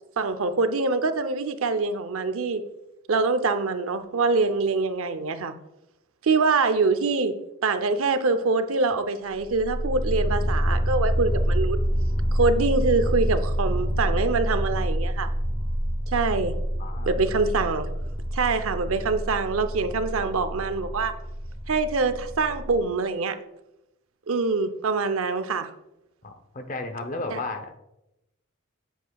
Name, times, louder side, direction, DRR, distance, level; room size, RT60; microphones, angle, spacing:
voice 1, 0.2-2.6 3.1-5.5 6.2-7.3 7.6-11.8 12.3-15.3 16.1-16.5 17.1-17.9 18.3-21.1 21.7-23.4 24.3-25.7 27.3-27.4, right 4 dB, 90° right, 10 dB, 0.6 m, -24 dB
sound 1, 9.3-22.8, equal, 25° right, 1.8 m, -27 dB
voice 2, 16.8-17.1 26.2-27.7, left 2 dB, 40° left, 6 dB, 0.7 m, -33 dB
8.2 x 8.0 x 2.3 m, 0.89 s
head